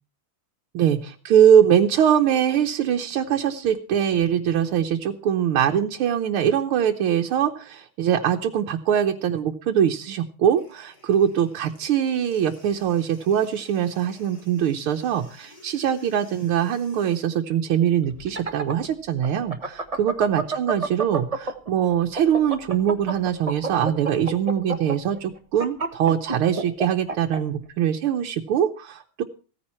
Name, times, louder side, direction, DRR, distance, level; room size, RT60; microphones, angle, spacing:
voice 1, 0.7-29.2, right 9 dB, 90° right, 3 dB, 1.8 m, -22 dB
sound 1, 10.5-17.3, left 2 dB, 45° left, 4.4 m, -53 dB
sound 2, 18.1-21.7 22.0-27.4, right 3 dB, 20° right, 1.1 m, -28 dB
16.0 x 14.5 x 4.4 m, 0.37 s
omnidirectional pair, 2.3 m